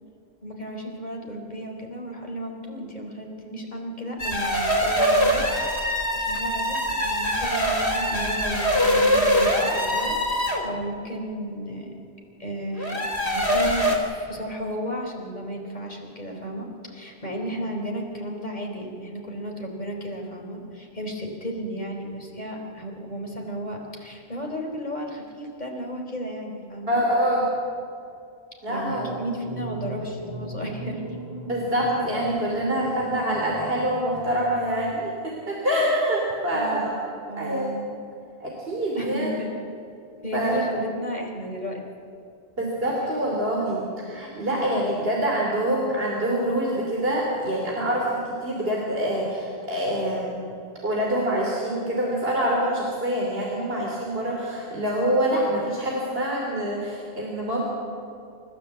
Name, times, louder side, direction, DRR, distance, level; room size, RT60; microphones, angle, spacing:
voice 1, 0.4-11.9 12.4-13.0 13.3-27.0 28.7-31.0 36.5-36.9 37.3-37.9 38.9-39.6 40.2-41.8, equal, 45° left, 1 dB, 4.0 m, -34 dB
sound 1, 4.2-10.7 12.7-14.0, equal, 85° left, 4.1 m, -23 dB
voice 2, 26.9-27.5 28.6-29.1 31.5-36.9 37.4-37.7 38.4-39.3 40.3-40.6 42.6-50.4 50.8-57.6, right 1 dB, 65° right, -2 dB, 3.5 m, -25 dB
sound 2, 28.8-35.0, right 1 dB, 15° right, 5.3 m, -37 dB
28.0 x 14.5 x 8.2 m, 2.6 s
omnidirectional pair, 1.1 m